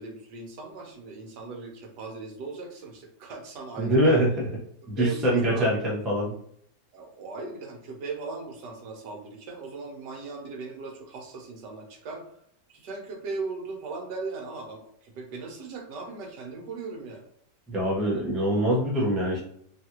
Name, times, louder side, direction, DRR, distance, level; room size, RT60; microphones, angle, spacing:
voice 1, 0.0-4.2 5.0-5.7 6.9-12.2 12.7-17.3, right 4 dB, 80° right, 1 dB, 1.4 m, -38 dB
voice 2, 3.8-4.3 4.9-6.3 17.7-19.4, right 1 dB, ahead, -5 dB, 0.3 m, -24 dB
3.1 x 2.4 x 2.9 m, 0.68 s
omnidirectional pair, 1.8 m